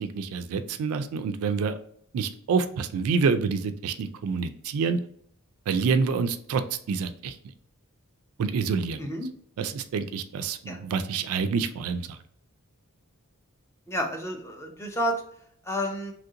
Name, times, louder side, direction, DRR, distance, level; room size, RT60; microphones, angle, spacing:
voice 1, 0.0-1.8 2.1-5.0 5.7-6.6 6.9-7.4 8.4-9.1 9.6-12.2, right 5 dB, 70° right, 10 dB, 0.3 m, -27 dB
voice 2, 13.9-15.2 15.6-16.1, equal, 10° left, 1 dB, 0.5 m, -30 dB
3.1 x 2.5 x 2.7 m, 0.63 s
head